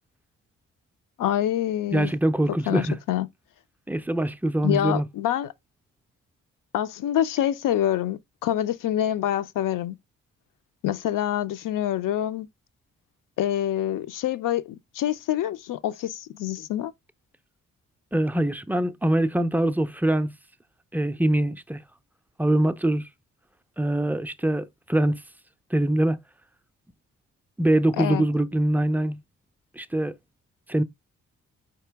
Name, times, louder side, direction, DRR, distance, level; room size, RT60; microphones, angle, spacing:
voice 1, 1.2-2.1 2.7-3.3 4.6-5.5 6.7-10.0 10.8-12.5 13.4-16.9 28.0-28.2, left 11 dB, 65° left, 0.5 m, -26 dB
voice 2, 1.9-3.0 3.9-5.1 18.1-20.3 20.9-21.8 22.4-23.1 23.8-25.2 25.7-26.2 27.6-29.2 29.8-30.1 30.7-30.8, right 1 dB, 5° right, 0.4 m, -23 dB
4.4 x 2.9 x 3.4 m
supercardioid pair, 45°, 35 cm